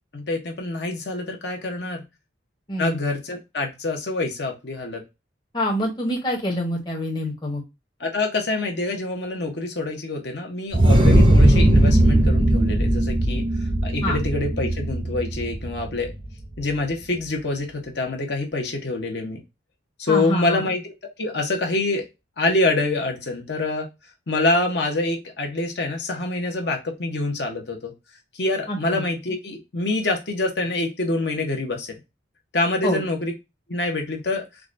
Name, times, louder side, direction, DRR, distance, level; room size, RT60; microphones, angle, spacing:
voice 1, 0.1-2.0 2.8-5.0 8.0-13.4 13.8-16.1 16.6-19.4 20.0-20.9 21.2-22.0 22.4-23.9 24.3-27.9 28.3-31.9 32.5-33.3 33.7-34.5, left 2 dB, 65° left, 1 dB, 0.8 m, -26 dB
voice 2, 5.5-7.6 14.0-14.2 20.1-20.7 28.7-29.0 32.8-33.0, left 1 dB, 25° left, -2 dB, 0.8 m, -26 dB
sound 1, 10.7-16.2, right 1 dB, 25° right, 0.5 m, -18 dB
4.7 x 2.2 x 2.4 m, 0.24 s
head